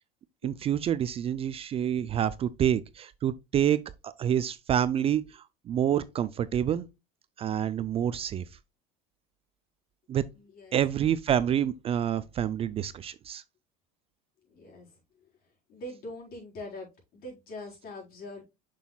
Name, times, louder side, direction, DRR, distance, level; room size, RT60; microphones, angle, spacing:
voice 1, 0.4-6.9 7.4-8.4 10.1-10.2 10.7-13.4, right 10 dB, 30° right, 0.4 m, -28 dB
voice 2, 10.3-10.8 14.5-15.3 15.7-18.4, left 1 dB, 55° left, 4.2 m, -43 dB
6.9 x 6.2 x 2.3 m
supercardioid pair, 115°, 18 cm